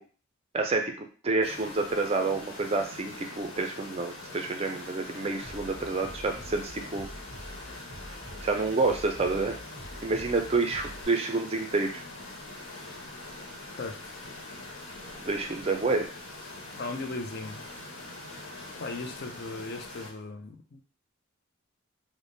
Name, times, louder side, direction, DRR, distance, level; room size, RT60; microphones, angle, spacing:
voice 1, 0.5-7.1 8.4-9.6 10.0-12.0 15.2-16.1, right 3 dB, 30° right, 4 dB, 0.4 m, -28 dB
sound 1, 1.4-20.1, left 2 dB, 75° left, 1.1 m, -43 dB
Bass drum, 5.4-11.0, equal, 10° left, 0.9 m, -46 dB
voice 2, 16.8-17.6 18.8-20.8, left 3 dB, 50° left, 5 dB, 0.5 m, -37 dB
3.3 x 2.1 x 3.9 m, 0.38 s
head